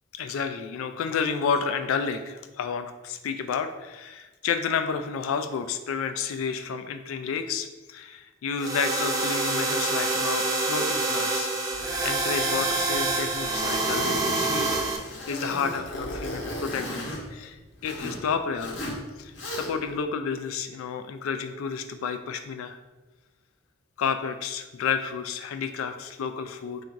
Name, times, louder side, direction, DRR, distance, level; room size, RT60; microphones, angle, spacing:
voice 1, 0.1-11.5 12.0-14.7 15.3-22.8 24.0-26.8, left 6 dB, 85° left, 8 dB, 0.3 m, -31 dB
sound 1, 8.6-15.0, right 2 dB, 15° right, 0.3 m, -26 dB
Zipper (clothing), 11.7-18.2 18.6-19.0 19.3-19.9, equal, 60° left, 0.8 m, -37 dB
3.9 x 2.5 x 4.5 m, 1.2 s
head